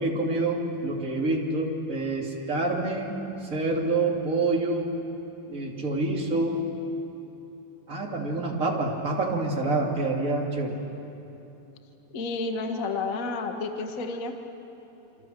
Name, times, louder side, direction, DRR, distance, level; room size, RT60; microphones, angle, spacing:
voice 1, 0.0-4.9 5.5-6.6 7.9-10.8, right 2 dB, 25° right, -1 dB, 2.7 m, -27 dB
voice 2, 12.1-14.4, left 3 dB, 60° left, 5 dB, 0.8 m, -30 dB
28.0 x 26.0 x 7.6 m, 3.0 s
omnidirectional pair, 4.2 m